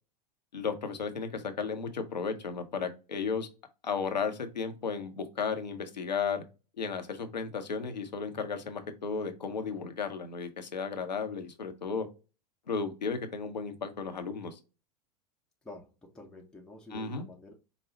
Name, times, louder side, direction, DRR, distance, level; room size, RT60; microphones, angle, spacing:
voice 1, 0.5-3.5 3.8-6.4 6.8-12.1 12.7-14.6 16.9-17.3, left 5 dB, 90° left, 0.7 m, -34 dB
voice 2, 15.6-17.5, left 2 dB, 5° left, 0.8 m, -49 dB
5.0 x 2.0 x 3.7 m
hypercardioid pair, 90°, 21 cm